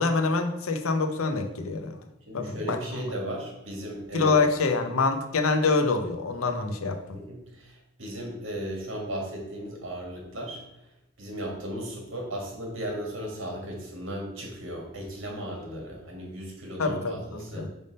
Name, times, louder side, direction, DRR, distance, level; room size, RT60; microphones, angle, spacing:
voice 1, 0.0-2.0 2.3-3.0 4.1-7.2 16.8-17.7, left 3 dB, 85° left, 6 dB, 0.7 m, -26 dB
voice 2, 2.3-4.4 7.1-10.6 11.2-17.7, right 1 dB, 65° right, 0 dB, 1.6 m, -36 dB
5.3 x 3.5 x 5.2 m, 0.85 s
head